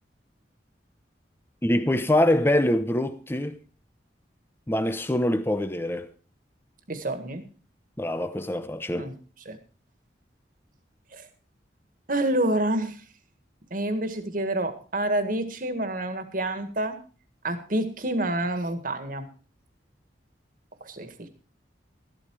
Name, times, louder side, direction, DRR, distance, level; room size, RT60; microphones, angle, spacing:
voice 1, 1.6-3.6 4.7-6.1 8.0-9.1, left 1 dB, 15° left, 0.8 m, -24 dB
voice 2, 6.9-7.4 9.0-9.1 9.5-9.6 11.1-11.3 12.1-13.0 13.7-17.0 17.4-19.3 20.8-21.3, right 1 dB, 50° right, 1.9 m, -28 dB
13.5 x 12.0 x 4.8 m
head